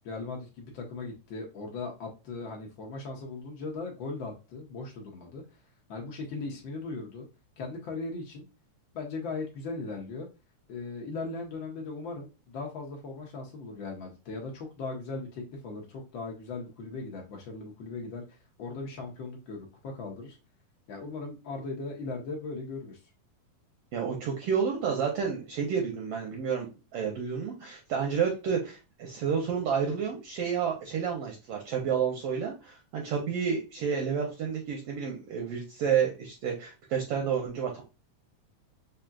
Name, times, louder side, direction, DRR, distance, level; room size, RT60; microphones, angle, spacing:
voice 1, 0.0-5.4 5.9-7.3 7.6-8.4 8.9-10.3 10.7-20.4 20.9-23.0, left 3 dB, 85° left, 1 dB, 1.0 m, -38 dB
voice 2, 23.9-37.8, right 7 dB, 70° right, 1 dB, 1.5 m, -30 dB
4.8 x 2.8 x 2.3 m, 0.29 s
omnidirectional pair, 3.4 m